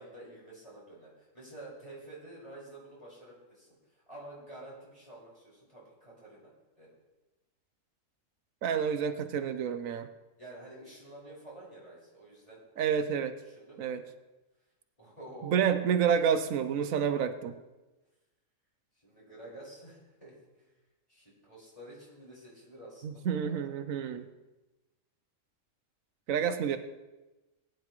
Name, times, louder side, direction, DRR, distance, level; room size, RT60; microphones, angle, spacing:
voice 1, 0.0-6.9 10.4-12.6 13.4-14.0 15.0-15.9 18.9-20.7 21.1-23.8 24.2-24.3, right 1 dB, 25° left, -6 dB, 5.3 m, -49 dB
voice 2, 8.6-10.1 12.8-13.3 13.8-14.0 15.4-17.6 23.0-24.3 26.3-26.8, right 7 dB, 90° right, 9 dB, 1.2 m, -29 dB
19.0 x 9.7 x 3.2 m, 1.1 s
omnidirectional pair, 1.4 m